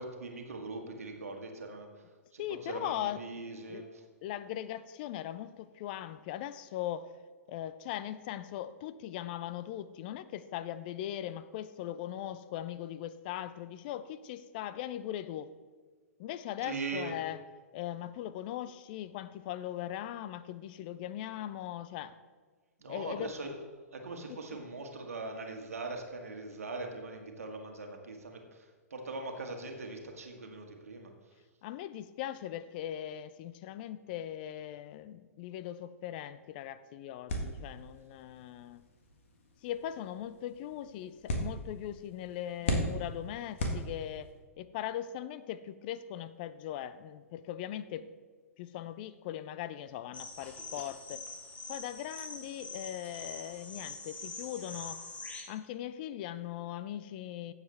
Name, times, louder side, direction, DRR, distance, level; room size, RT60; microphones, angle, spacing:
voice 1, 0.0-2.0 2.3-4.0 16.6-17.1 22.8-23.5 23.9-31.1, right 3 dB, 65° right, 3 dB, 1.6 m, -41 dB
voice 2, 2.4-3.2 3.7-3.8 4.2-7.1 7.5-15.5 16.2-17.4 17.7-22.2 22.9-23.3 24.3-24.4 31.6-38.8 39.6-48.0 48.6-51.2 51.7-55.0 55.5-57.5, left 12 dB, 35° left, 15 dB, 0.5 m, -40 dB
sound 1, 37.3-44.4, left 1 dB, 55° left, 1.7 m, -38 dB
sound 2, 50.1-55.4, left 3 dB, 15° left, 1.3 m, -44 dB
15.5 x 7.4 x 3.4 m, 1.5 s
figure-of-eight pair, 110°, 8 cm